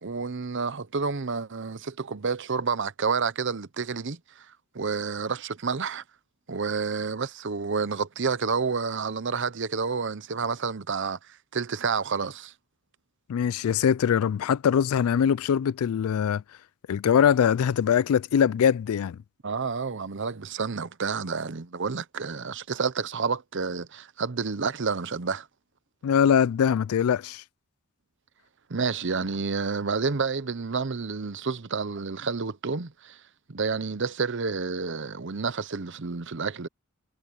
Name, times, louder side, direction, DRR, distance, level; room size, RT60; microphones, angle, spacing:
voice 1, 0.0-4.5 4.7-6.0 6.5-11.2 11.5-12.5 19.4-25.5 28.7-33.2 33.5-36.7, right 5 dB, 55° right, 0.8 m, -29 dB
voice 2, 13.3-16.4 16.9-19.2 26.0-27.4, left 8 dB, 75° left, 0.3 m, -22 dB
head